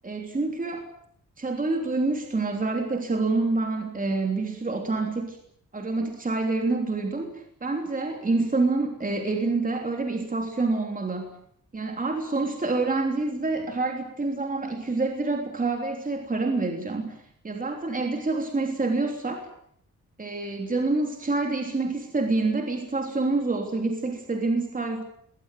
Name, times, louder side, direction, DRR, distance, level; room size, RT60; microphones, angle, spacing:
voice 1, 0.0-0.9 1.4-5.4 5.7-11.3 11.7-19.5 20.2-25.0, right 3 dB, 25° right, 3 dB, 3.3 m, -27 dB
22.0 x 18.5 x 9.1 m, 0.67 s
wide cardioid pair, 135°, 32 cm